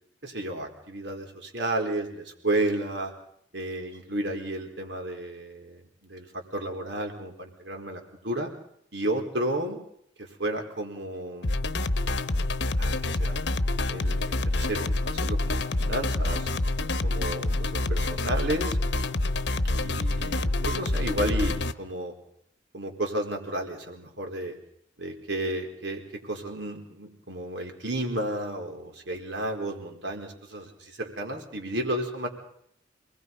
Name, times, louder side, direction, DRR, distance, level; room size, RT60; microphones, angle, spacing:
voice 1, 0.2-3.1 3.5-8.5 8.9-9.8 10.2-11.7 12.8-13.4 13.9-16.5 17.0-18.8 19.7-22.1 22.7-24.5 25.0-32.3, right 1 dB, 70° right, 3 dB, 4.6 m, -32 dB
sound 1, 11.4-21.7, left 2 dB, 60° left, 1.0 m, -27 dB
28.0 x 20.5 x 5.5 m, 0.70 s
head